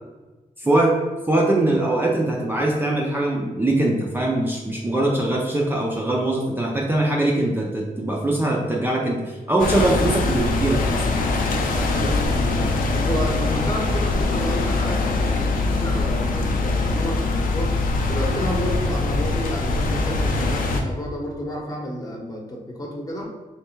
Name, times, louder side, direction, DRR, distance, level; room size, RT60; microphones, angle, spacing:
voice 1, 0.6-1.0 1.3-11.2, right 1 dB, 15° right, -2 dB, 0.4 m, -22 dB
sound 1, 9.6-20.8, left 3 dB, 85° left, 0.6 m, -22 dB
voice 2, 11.7-12.6 12.9-17.7 18.1-23.3, equal, 25° left, -1 dB, 0.8 m, -31 dB
3.3 x 3.2 x 4.4 m, 1.2 s
wide cardioid pair, 155°, 14 cm